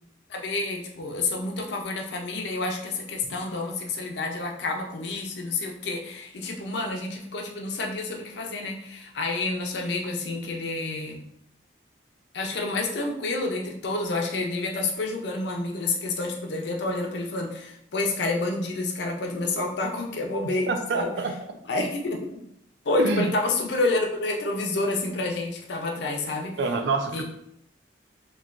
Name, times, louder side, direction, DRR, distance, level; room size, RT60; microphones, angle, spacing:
voice 1, 0.3-11.3 12.3-21.1 21.7-22.4 22.9-26.5 27.1-27.2, left 2 dB, 65° left, 2 dB, 0.5 m, -29 dB
voice 2, 20.7-21.3 23.0-23.3 26.6-27.2, right 3 dB, 70° right, 5 dB, 0.4 m, -26 dB
3.1 x 2.3 x 2.4 m, 0.75 s
head